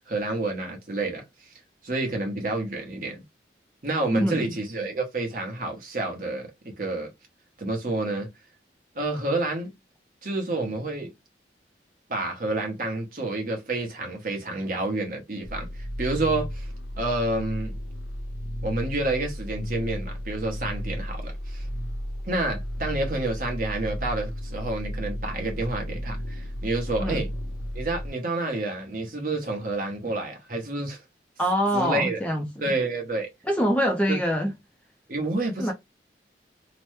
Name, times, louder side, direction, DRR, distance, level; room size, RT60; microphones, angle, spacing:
voice 1, 0.1-1.2 1.8-3.2 3.8-6.5 6.8-7.1 7.6-8.3 8.9-9.7 10.2-11.1 12.1-16.7 17.0-17.7 18.6-21.7 22.3-27.3 27.7-31.0 31.7-32.2 32.6-33.3 34.1-34.2 35.1-35.7, right 2 dB, 50° right, 1.0 m, -29 dB
voice 2, 4.1-4.5 27.0-27.2 31.4-32.5 33.4-34.5 35.6-35.7, equal, 5° left, 0.5 m, -24 dB
sound 1, 15.4-28.1, equal, 80° left, 0.9 m, -33 dB
2.9 x 2.2 x 3.1 m
head